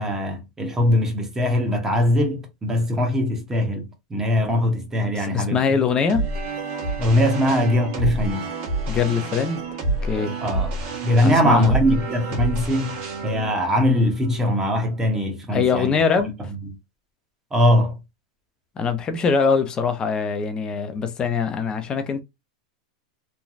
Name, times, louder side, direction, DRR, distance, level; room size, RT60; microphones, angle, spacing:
voice 1, 0.0-5.6 7.0-8.5 10.4-10.7 11.0-13.0 13.2-16.0 17.5-18.0, left 1 dB, 15° right, 0.9 m, -21 dB
voice 2, 5.2-6.2 8.9-10.4 11.2-11.7 15.5-16.3 18.8-22.2, left 6 dB, 25° left, 0.6 m, -23 dB
sound 1, 6.1-15.3, right 3 dB, 50° right, 1.3 m, -29 dB
3.2 x 2.2 x 2.5 m
supercardioid pair, 135°, 4 cm